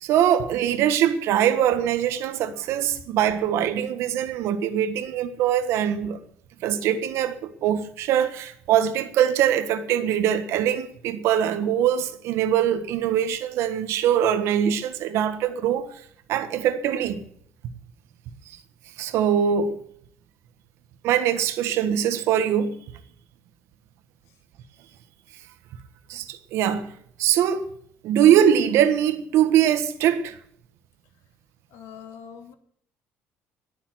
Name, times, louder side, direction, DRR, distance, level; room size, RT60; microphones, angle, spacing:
voice 1, 0.0-6.2 6.6-15.9 16.3-17.2 18.5-18.6 19.0-19.8 21.0-22.8 26.1-26.9 27.2-27.6 28.0-30.4, right 10 dB, 75° right, 1.5 m, -22 dB
voice 2, 31.7-32.5, left 7 dB, 85° left, 2.3 m, -43 dB
20.5 x 7.0 x 7.9 m
cardioid pair, 140°, 5 cm